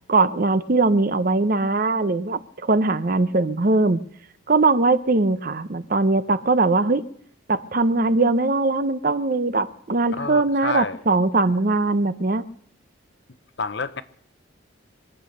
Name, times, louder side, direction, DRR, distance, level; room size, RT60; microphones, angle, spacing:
voice 1, 0.1-4.0 4.5-7.0 7.5-12.4, right 3 dB, 45° right, 0.7 m, -21 dB
voice 2, 10.1-11.0 13.6-14.0, left 4 dB, 60° left, 0.8 m, -29 dB
24.0 x 8.5 x 6.6 m
head